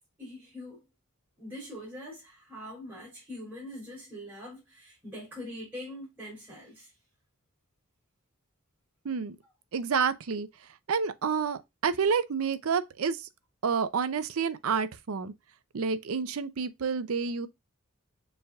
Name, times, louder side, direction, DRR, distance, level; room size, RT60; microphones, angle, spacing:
voice 1, 0.2-0.8 1.4-6.9, left 1 dB, 10° right, 3.4 m, -43 dB
voice 2, 9.0-9.4 9.7-10.5 10.9-13.2 13.6-15.3 15.7-17.5, right 6 dB, 75° right, 0.5 m, -29 dB
6.9 x 3.3 x 2.3 m
head